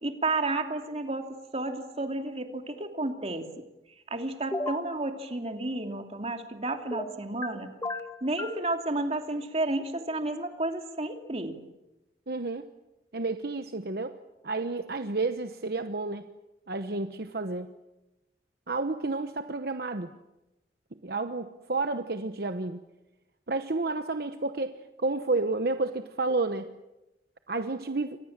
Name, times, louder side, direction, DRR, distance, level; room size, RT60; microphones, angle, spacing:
voice 1, 0.0-3.6 4.1-7.8 8.2-11.6, right 2 dB, 35° right, 5 dB, 2.8 m, -32 dB
sound 1, 4.5-4.9 6.9-7.5 7.8-8.6, left 1 dB, 15° left, 1.3 m, -34 dB
voice 2, 12.3-12.7 13.1-14.1 14.4-16.2 16.7-17.7 18.7-20.1 21.0-22.8 23.5-26.7 27.5-28.2, right 3 dB, 60° right, 8 dB, 1.0 m, -30 dB
29.5 x 24.5 x 7.4 m, 0.98 s
head